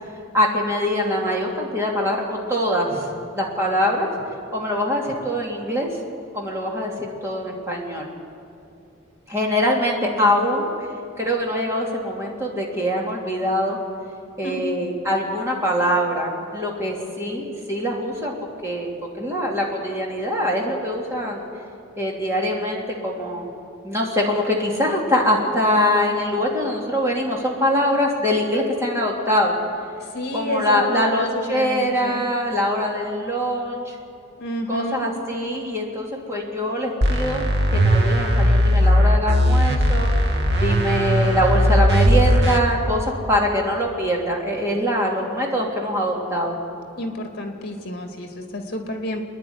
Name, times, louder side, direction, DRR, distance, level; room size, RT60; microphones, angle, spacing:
voice 1, 0.3-4.1 4.5-5.9 6.3-8.1 9.3-10.7 11.2-13.8 14.4-18.3 18.6-18.9 19.2-21.4 22.0-23.5 23.8-29.5 30.3-34.0 34.7-46.6, equal, 15° right, -2 dB, 2.9 m, -23 dB
voice 2, 10.0-10.4 14.4-14.6 30.0-32.3 34.4-35.1 47.0-49.3, left 1 dB, 55° left, 4 dB, 2.3 m, -30 dB
sound 1, 37.0-42.6, equal, 55° right, 1.4 m, -18 dB
27.0 x 10.5 x 9.6 m, 2.5 s
head